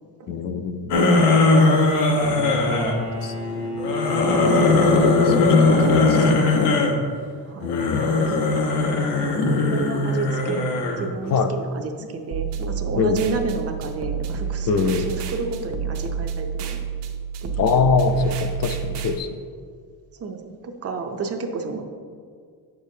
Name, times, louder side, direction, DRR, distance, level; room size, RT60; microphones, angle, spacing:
voice 1, 0.3-1.0 2.2-2.8 3.2-3.3 3.7-4.3 5.0-6.6 7.6-8.1 11.3-11.5 13.0-13.2 14.7-15.1 17.6-19.4, left 5 dB, 55° left, 8 dB, 0.5 m, -24 dB
sound 1, 0.9-3.0 3.8-7.0 7.6-11.1, left 3 dB, 85° left, 1.1 m, -19 dB
Bowed string instrument, 2.1-6.3, left 6 dB, 10° left, 0.6 m, -28 dB
voice 2, 9.5-10.7 11.0-16.8 17.4-18.1 20.2-20.5 20.8-21.8, right 4 dB, 40° right, 4 dB, 0.5 m, -31 dB
sound 2, 12.3-19.2, right 6 dB, 80° right, 0.8 m, -29 dB
8.9 x 6.7 x 2.7 m, 2.1 s
cardioid pair, 175°, 40 cm